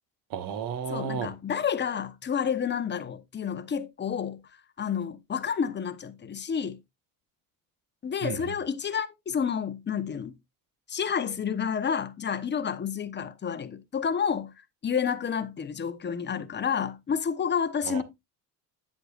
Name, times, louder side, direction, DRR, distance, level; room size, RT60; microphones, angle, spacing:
voice 1, 0.3-1.3 8.2-8.5 17.9-18.0, right 6 dB, 60° right, 1.5 m, -32 dB
voice 2, 0.9-4.4 4.8-6.8 8.0-10.3 10.9-14.5 14.8-18.0, left 7 dB, 25° left, 0.9 m, -30 dB
8.4 x 7.9 x 2.4 m
supercardioid pair, 95°, 39 cm